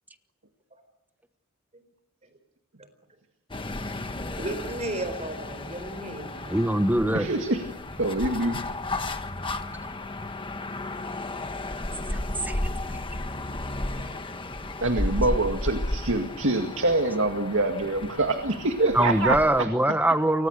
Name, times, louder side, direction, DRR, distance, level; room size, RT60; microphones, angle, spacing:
sound 1, 3.5-19.7, left 2 dB, 25° left, 1.3 m, -34 dB
voice 1, 4.4-6.7 15.1-15.2, right 2 dB, 30° right, 10 dB, 4.3 m, -34 dB
voice 2, 6.5-7.3 12.1-12.2 12.4-12.6 18.9-20.5, right 1 dB, 10° right, 10 dB, 1.1 m, -23 dB
voice 3, 7.1-7.6 8.0-8.6 13.9-14.1 14.8-19.7, right 2 dB, 60° right, 5 dB, 2.1 m, -25 dB
29.5 x 24.5 x 6.6 m, 0.90 s
head